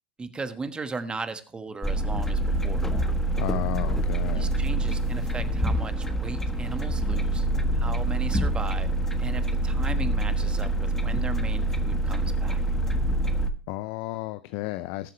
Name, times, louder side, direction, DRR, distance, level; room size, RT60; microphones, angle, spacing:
voice 1, 0.2-2.9 4.3-7.5 7.7-8.9 9.2-12.6, right 4 dB, 15° right, 10 dB, 1.4 m, -37 dB
sound 1, 1.8-13.5, right 1 dB, 5° left, 1.3 m, -26 dB
voice 2, 3.4-4.5 13.7-15.1, left 16 dB, 50° left, 14 dB, 0.5 m, -33 dB
19.5 x 7.4 x 3.1 m, 0.38 s
hypercardioid pair, 90°, 6 cm